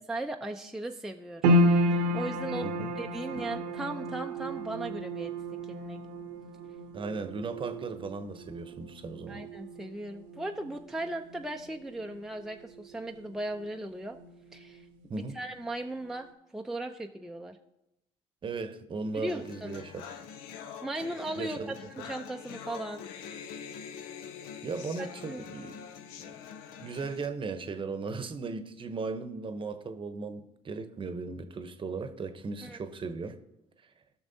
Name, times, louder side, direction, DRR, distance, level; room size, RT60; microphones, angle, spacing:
voice 1, 0.1-1.6 2.1-5.3 5.7-6.0 9.3-14.2 14.5-16.3 16.5-17.6 19.1-19.9 20.8-23.0 25.0-25.4 32.6-32.8, right 1 dB, 5° right, 0.5 m, -37 dB
sound 1, 1.4-13.8 14.1-15.1 15.5-15.6, equal, 85° right, 1.0 m, -32 dB
voice 2, 6.9-9.4 15.1-15.4 18.4-20.1 21.4-21.7 24.6-25.8 26.2-26.3 26.8-33.4, right 4 dB, 35° right, 0.9 m, -37 dB
sound 2, 19.3-27.3, left 7 dB, 75° left, 0.7 m, -44 dB
16.0 x 6.1 x 2.7 m
supercardioid pair, 75°, 15 cm